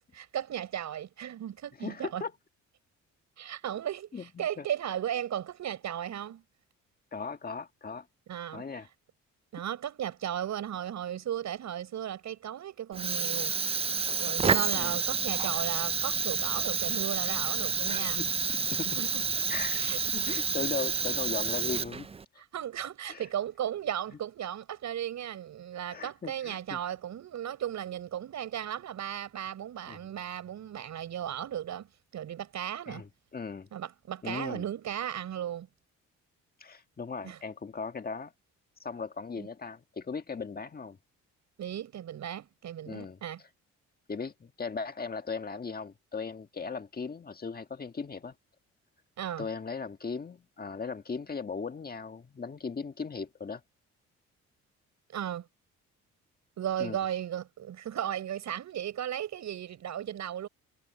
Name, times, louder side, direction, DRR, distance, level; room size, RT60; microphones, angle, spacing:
voice 1, 0.0-2.2 3.4-6.4 8.3-8.7 9.5-13.6 14.2-18.2 18.7-19.2 19.7-20.0 20.2-20.4 22.5-31.9 32.1-33.0 33.7-35.7 37.2-37.4 39.4-39.5 41.6-43.4 49.2-49.5 55.1-55.5 56.6-60.5, right 10 dB, 70° right, 7.0 m, -36 dB
voice 2, 1.8-2.3 4.1-4.7 7.1-8.1 8.5-8.9 14.7-15.0 18.2-19.0 19.3-22.1 22.3-22.4 23.1-23.2 25.9-26.8 29.9-30.0 32.9-33.7 34.2-34.6 36.6-38.3 38.8-41.0 42.9-43.2 44.1-48.3 49.4-53.6 56.8-57.0, left 5 dB, 30° left, 1.7 m, -38 dB
Fire, 12.9-22.2, right 5 dB, 20° right, 0.4 m, -29 dB
cardioid pair, 90°, 30 cm